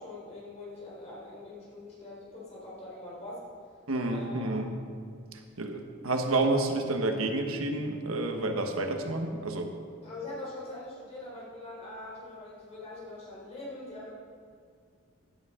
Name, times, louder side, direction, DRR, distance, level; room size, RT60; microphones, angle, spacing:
voice 1, 0.0-3.4 4.1-4.6 10.0-14.1, left 2 dB, 30° left, -6 dB, 3.9 m, -43 dB
voice 2, 3.9-4.7 5.6-9.7, right 2 dB, 90° right, 4 dB, 1.3 m, -29 dB
15.5 x 11.0 x 3.7 m, 2.2 s
head